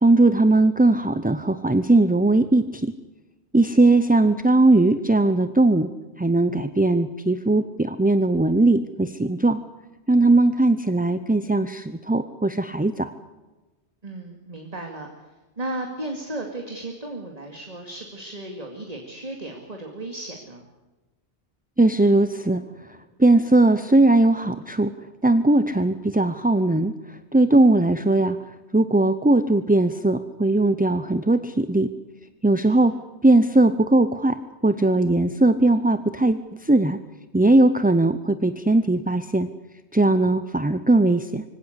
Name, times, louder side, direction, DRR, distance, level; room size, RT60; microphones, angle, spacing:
voice 1, 0.0-2.9 3.5-5.9 6.2-9.6 10.1-13.1 21.8-22.6 23.2-24.9 25.2-26.9 27.3-28.4 28.7-31.9 32.4-32.9 33.2-34.4 34.6-37.0 37.3-39.5 39.9-41.4, right 2 dB, 10° right, 11 dB, 0.6 m, -19 dB
voice 2, 14.0-15.1 15.6-20.7 32.6-32.8, right 1 dB, 35° right, 2 dB, 2.5 m, -35 dB
24.5 x 17.0 x 8.1 m, 1.2 s
omnidirectional pair, 1.1 m